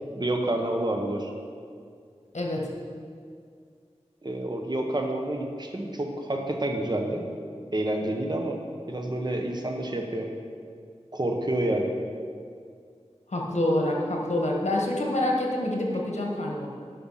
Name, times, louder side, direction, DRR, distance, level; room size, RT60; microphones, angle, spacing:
voice 1, 0.1-1.3 4.2-7.2 7.7-8.6 8.9-10.3 11.1-11.9, right 1 dB, 35° right, 2 dB, 1.1 m, -28 dB
voice 2, 2.3-2.7 13.3-16.7, left 1 dB, 75° left, -1 dB, 1.5 m, -26 dB
11.0 x 5.8 x 5.7 m, 2.2 s
wide cardioid pair, 60°, 12 cm